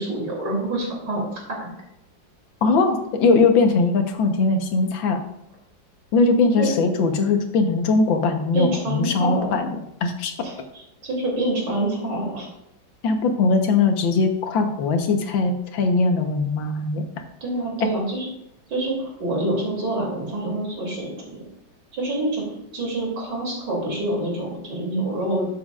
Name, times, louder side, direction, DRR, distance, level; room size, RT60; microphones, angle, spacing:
voice 1, 0.0-1.7 6.6-6.8 8.5-9.5 10.4-12.5 17.4-18.3 18.7-21.4 21.9-22.4 22.7-25.4, right 1 dB, 65° right, -2 dB, 3.5 m, -26 dB
voice 2, 2.6-5.2 6.1-9.7 10.0-10.3 13.0-17.0, left 3 dB, 85° left, 5 dB, 1.8 m, -20 dB
12.5 x 6.9 x 2.4 m, 0.83 s
omnidirectional pair, 2.0 m